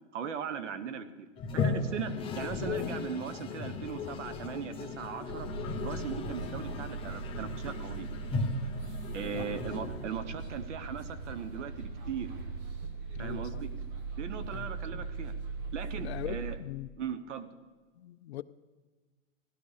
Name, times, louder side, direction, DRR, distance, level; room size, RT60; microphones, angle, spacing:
voice 1, 0.1-1.3 1.5-5.5 5.7-8.1 9.1-12.3 13.2-13.7 14.2-15.3 15.7-16.6 17.0-17.5, right 7 dB, 70° right, 12 dB, 1.3 m, -39 dB
Toilet flush, 1.4-10.5, left 4 dB, 15° left, 0.7 m, -36 dB
sound 1, 5.3-16.6, right 4 dB, 25° right, 1.3 m, -39 dB
voice 2, 13.1-13.6 14.5-14.7 14.9-15.0 16.0-16.9 18.0-18.4, left 14 dB, 60° left, 15 dB, 0.6 m, -41 dB
16.0 x 11.0 x 5.1 m, 1.3 s
hypercardioid pair, 150°, 38 cm